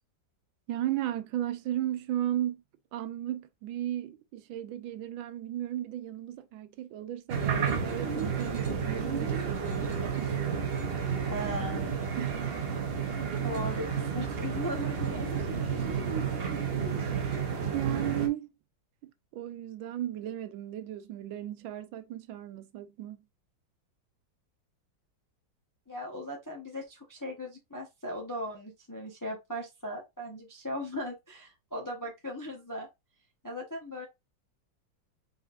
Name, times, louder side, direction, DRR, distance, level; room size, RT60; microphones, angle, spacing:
voice 1, 0.7-2.6 2.9-10.4 12.2-12.6 17.7-18.5 19.0-23.2, right 12 dB, 85° right, 1.4 m, -35 dB
sound 1, 7.3-18.3, right 6 dB, 60° right, 0.6 m, -31 dB
voice 2, 11.3-11.8 13.3-15.3 25.9-32.9 33.4-34.1, left 1 dB, 25° left, 0.4 m, -38 dB
4.1 x 3.8 x 2.5 m
omnidirectional pair, 2.1 m